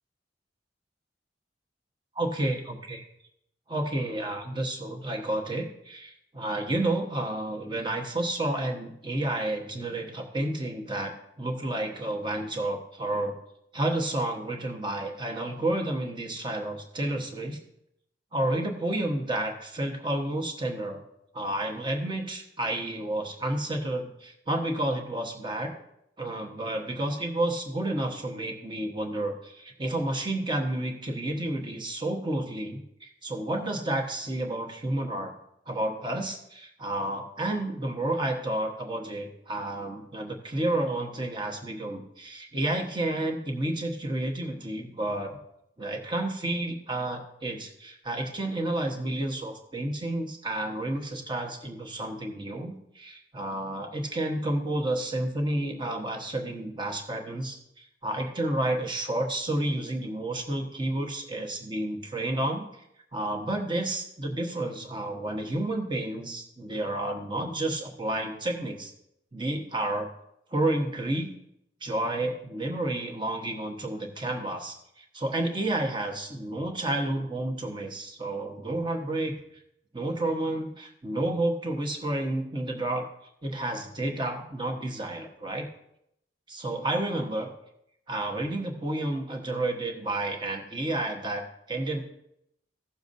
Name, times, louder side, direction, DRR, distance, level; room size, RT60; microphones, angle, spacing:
voice 1, 2.2-3.0 3.7-11.1 11.4-13.3 13.7-17.6 18.3-21.0 21.3-25.7 26.2-35.3 35.7-45.4 45.8-62.8 63.1-68.9 69.3-70.1 70.5-71.3 71.8-79.3 79.9-83.1 83.4-85.6 86.5-87.5 88.1-92.0, right 1 dB, 25° right, 2 dB, 1.2 m, -30 dB
16.0 x 7.0 x 2.7 m, 0.78 s
head